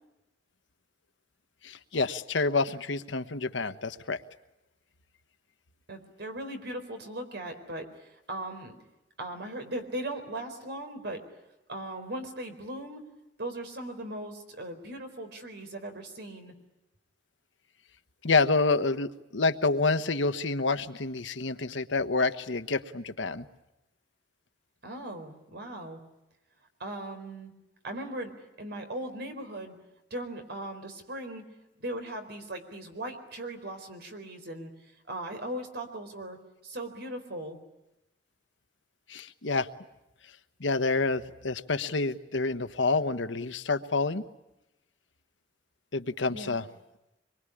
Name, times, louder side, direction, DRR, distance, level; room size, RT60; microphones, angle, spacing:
voice 1, 1.6-4.2 18.2-23.5 39.1-39.7 40.6-44.2 45.9-46.6, left 3 dB, 85° left, 11 dB, 1.2 m, -28 dB
voice 2, 5.9-8.8 9.2-11.3 11.7-13.1 13.4-16.5 24.8-26.0 26.8-27.5 27.8-29.8 30.1-31.4 31.8-34.7 35.1-37.6 46.3-46.7, right 1 dB, 65° right, 7 dB, 4.3 m, -38 dB
25.0 x 23.0 x 10.0 m, 0.94 s
head